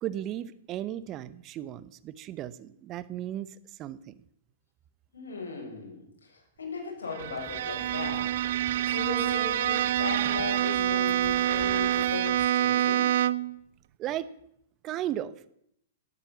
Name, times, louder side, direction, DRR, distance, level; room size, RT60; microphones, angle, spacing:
voice 1, 0.0-4.2 14.0-14.3 14.8-15.5, right 12 dB, 30° right, 16 dB, 0.9 m, -35 dB
voice 2, 5.1-8.3 8.8-13.1, left 4 dB, 75° left, 0 dB, 6.5 m, -37 dB
Bowed string instrument, 7.1-13.6, right 12 dB, 55° right, 0.5 m, -26 dB
sound 1, 7.2-12.5, equal, ahead, 2.5 m, -51 dB
13.5 x 12.5 x 7.0 m, 0.73 s
figure-of-eight pair, 105°, 0 cm